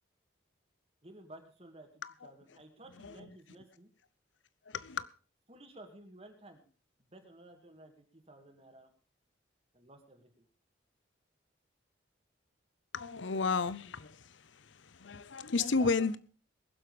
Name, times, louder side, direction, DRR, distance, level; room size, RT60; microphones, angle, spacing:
voice 1, 1.0-3.9 5.5-6.6 7.0-8.9 9.7-10.5 15.7-15.9, right 1 dB, 30° right, 2.3 m, -54 dB
voice 2, 3.0-3.3 4.7-5.1 12.9-16.2, left 4 dB, 75° left, 0.8 m, -33 dB
21.5 x 7.8 x 5.1 m
head